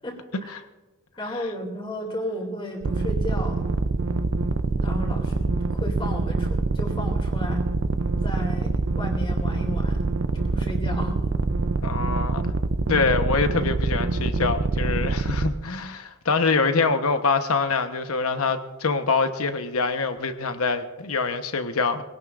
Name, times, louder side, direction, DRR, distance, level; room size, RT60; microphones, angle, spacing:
voice 1, 0.0-0.5 1.2-3.6 4.3-4.4 4.7-7.7 8.2-10.0 10.3-11.2, equal, 25° left, 1 dB, 2.6 m, -34 dB
sound 1, 2.8-15.5, right 3 dB, 60° right, 0.5 m, -25 dB
voice 2, 11.8-12.5 12.9-22.0, left 4 dB, 85° left, 8 dB, 1.0 m, -25 dB
22.5 x 17.0 x 2.5 m, 1.1 s
head